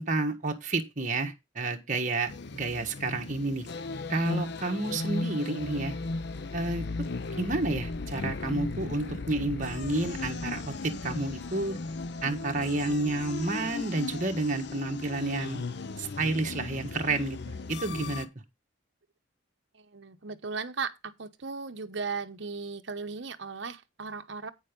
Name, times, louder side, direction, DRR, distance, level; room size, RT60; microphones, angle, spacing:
voice 1, 0.0-3.7 4.1-5.9 6.5-6.9 7.4-11.8 12.2-15.7 16.0-18.3, right 2 dB, 35° right, 1.4 m, -30 dB
sound 1, 2.3-18.3, left 3 dB, 55° left, 0.6 m, -36 dB
voice 2, 19.7-24.5, right 5 dB, 60° right, 0.9 m, -37 dB
9.0 x 6.5 x 5.2 m
head